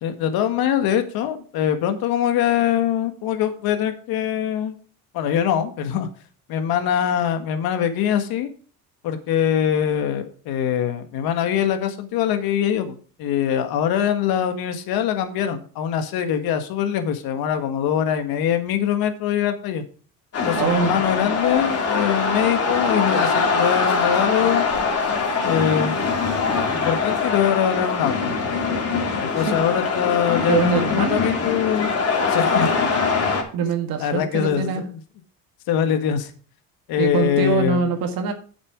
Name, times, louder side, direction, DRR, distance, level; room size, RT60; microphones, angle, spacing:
voice 1, 0.0-4.8 5.1-6.1 6.5-8.5 9.0-19.8 20.4-24.6 25.4-25.9 26.7-28.3 29.2-31.9 32.3-32.7 34.0-35.0 35.7-36.3 36.9-37.9, left 9 dB, 75° left, 8 dB, 1.7 m, -23 dB
sound 1, 20.3-33.4, left 4 dB, 40° left, 3.0 m, -23 dB
voice 2, 20.5-21.0 29.4-29.6 30.5-31.2 33.5-34.8 37.0-38.3, right 5 dB, 70° right, 5 dB, 1.9 m, -23 dB
8.7 x 7.4 x 4.7 m, 0.41 s
cardioid pair, 105°, 37 cm